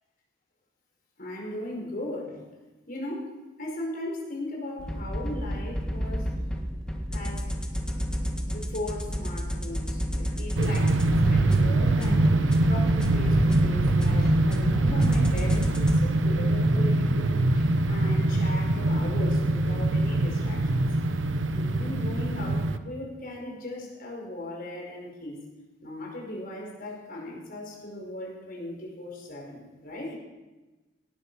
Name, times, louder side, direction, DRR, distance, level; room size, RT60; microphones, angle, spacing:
voice 1, 1.2-2.5 2.9-3.3 3.6-6.3 7.1-7.5 7.8-8.0 8.5-12.3 12.7-20.9 21.5-25.4 25.8-30.1, left 1 dB, 50° left, -1 dB, 5.4 m, -38 dB
sound 1, 4.8-16.0, equal, 5° left, 1.6 m, -31 dB
sound 2, 10.6-22.8, right 2 dB, 80° right, 0.9 m, -23 dB
18.5 x 11.0 x 6.3 m, 1.1 s
head